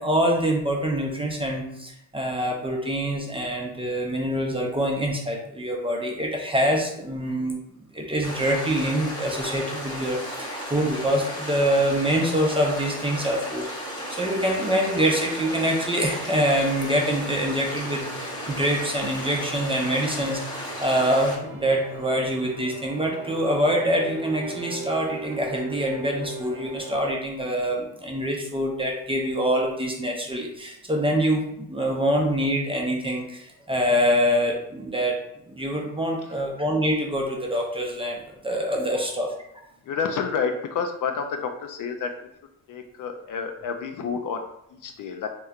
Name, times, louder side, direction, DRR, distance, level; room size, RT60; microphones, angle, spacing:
voice 1, 0.0-7.6 7.9-35.2 35.5-39.3, equal, 15° right, 0 dB, 0.6 m, -25 dB
sound 1, 8.2-21.4, equal, 10° left, 1.0 m, -34 dB
sound 2, 11.4-27.1, right 3 dB, 70° right, 0.8 m, -41 dB
voice 2, 39.8-42.1 42.7-44.4 44.7-45.3, left 6 dB, 50° left, 5 dB, 0.5 m, -29 dB
3.1 x 2.9 x 2.4 m, 0.76 s
cardioid pair, 90°, 42 cm